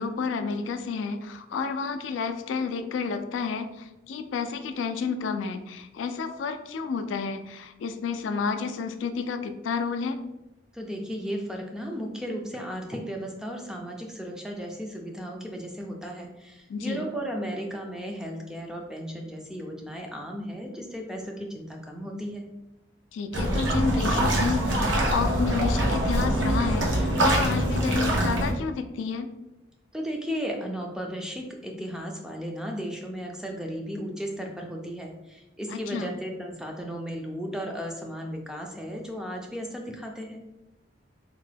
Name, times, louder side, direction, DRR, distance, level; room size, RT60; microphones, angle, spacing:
voice 1, 0.0-10.2 16.7-17.0 23.1-29.3 35.7-36.1, left 5 dB, 85° left, 8 dB, 0.3 m, -30 dB
voice 2, 10.7-22.5 29.9-40.4, equal, 5° right, 1 dB, 0.3 m, -35 dB
sound 1, 23.3-28.5, right 1 dB, 80° right, 0.7 m, -24 dB
3.6 x 2.2 x 3.3 m, 0.95 s
head